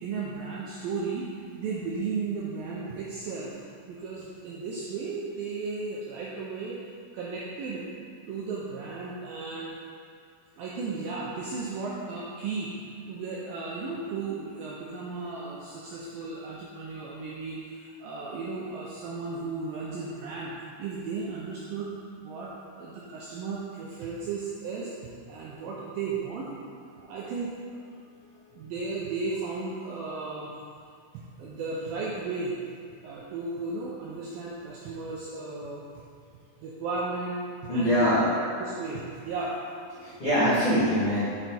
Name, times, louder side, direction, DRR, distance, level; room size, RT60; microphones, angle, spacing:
voice 1, 0.0-3.5 3.9-7.9 8.3-9.8 10.6-12.7 13.1-21.9 22.2-22.5 22.7-24.9 25.3-26.5 26.9-27.5 28.5-30.5 31.1-32.5 33.0-35.9 36.6-38.1 38.6-39.6 40.0-40.1 40.4-40.5, right 4 dB, 85° right, -5 dB, 2.1 m, -35 dB
voice 2, 37.7-38.3 40.0-41.2, equal, 55° left, -14 dB, 1.5 m, -23 dB
7.1 x 4.6 x 4.3 m, 2.2 s
omnidirectional pair, 4.9 m